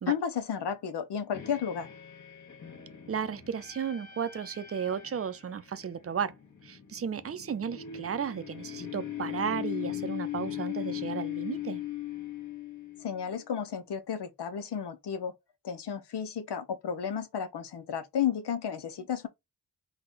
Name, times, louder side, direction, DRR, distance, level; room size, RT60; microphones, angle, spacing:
voice 1, 0.1-1.9 13.0-15.3 15.6-19.3, left 8 dB, 90° left, 0.8 m, -33 dB
sound 1, 1.3-13.4, left 12 dB, 45° left, 1.1 m, -39 dB
voice 2, 3.1-6.3 6.6-11.8, right 7 dB, 35° right, 0.5 m, -34 dB
3.9 x 2.3 x 3.9 m
wide cardioid pair, 105°, 40 cm